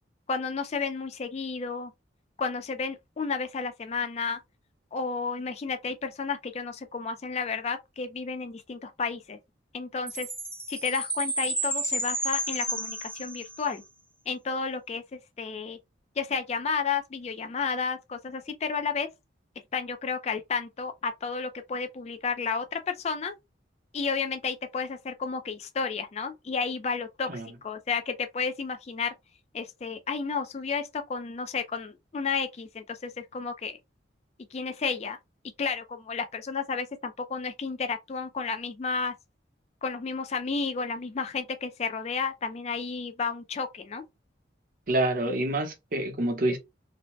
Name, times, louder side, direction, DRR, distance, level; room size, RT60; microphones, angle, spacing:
voice 1, 0.3-1.9 2.4-4.4 4.9-9.4 9.7-10.3 10.7-13.8 14.3-15.8 16.2-19.1 19.7-23.3 23.9-29.1 29.5-33.8 34.5-35.2 35.6-39.1 39.8-44.0, left 5 dB, 35° left, 0.3 m, -32 dB
Chime, 10.1-13.8, right 1 dB, 5° left, 0.7 m, -31 dB
voice 2, 44.9-46.6, right 1 dB, 50° right, 0.8 m, -27 dB
2.7 x 2.1 x 3.0 m
head